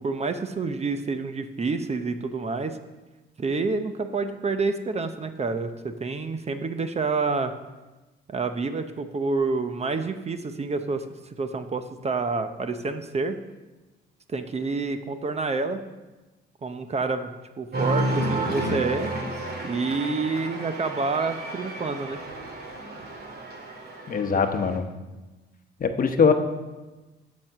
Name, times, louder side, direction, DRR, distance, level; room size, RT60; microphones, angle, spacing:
voice 1, 0.0-2.8 3.4-7.5 8.3-13.4 14.3-15.8 16.6-17.3 17.6-19.1 19.6-22.2, right 4 dB, 30° right, 9 dB, 0.7 m, -28 dB
Cheering, 17.7-24.8, right 1 dB, 50° right, 2.3 m, -31 dB
voice 2, 24.1-24.9 25.8-26.3, left 5 dB, 45° left, 6 dB, 1.0 m, -21 dB
7.4 x 7.3 x 6.7 m, 1.2 s
cardioid pair, 90°, 20 cm